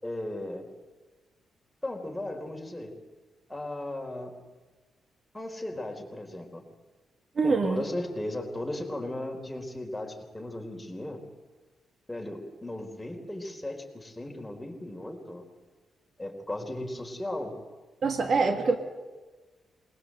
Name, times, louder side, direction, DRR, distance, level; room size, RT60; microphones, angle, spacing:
voice 1, 0.0-0.7 1.8-2.9 3.5-4.3 5.3-6.6 7.4-11.2 12.1-15.4 16.2-17.5, left 1 dB, 10° left, 2 dB, 4.1 m, -36 dB
voice 2, 7.4-7.8 18.0-18.8, right 4 dB, 55° right, 6 dB, 1.8 m, -24 dB
20.0 x 20.0 x 7.8 m, 1.3 s
cardioid pair, 65°, 0 cm